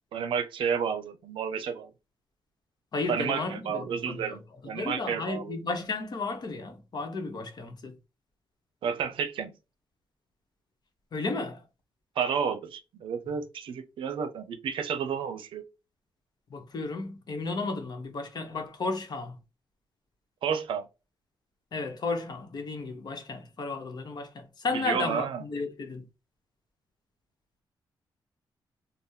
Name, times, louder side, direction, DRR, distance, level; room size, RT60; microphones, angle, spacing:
voice 1, 0.1-1.9 3.1-5.6 8.8-9.5 12.2-15.6 20.4-20.9 24.7-25.4, right 7 dB, 85° right, 0.5 m, -31 dB
voice 2, 2.9-4.4 4.7-7.9 11.1-11.6 16.5-19.4 21.7-26.0, left 3 dB, 55° left, 0.8 m, -33 dB
3.4 x 2.0 x 2.7 m
cardioid pair, 95°, 9 cm